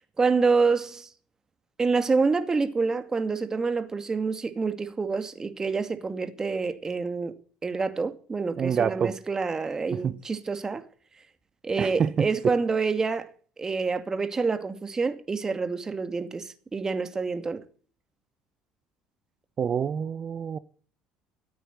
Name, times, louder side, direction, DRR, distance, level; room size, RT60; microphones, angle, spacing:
voice 1, 0.2-1.1 1.8-7.3 7.6-10.8 11.6-13.3 13.6-17.6, right 4 dB, 25° right, 2.3 m, -27 dB
voice 2, 8.6-9.2 9.9-10.2 11.8-12.5 19.6-20.6, right 7 dB, 40° right, 0.9 m, -27 dB
14.5 x 8.9 x 9.6 m
supercardioid pair, 80°, 2 cm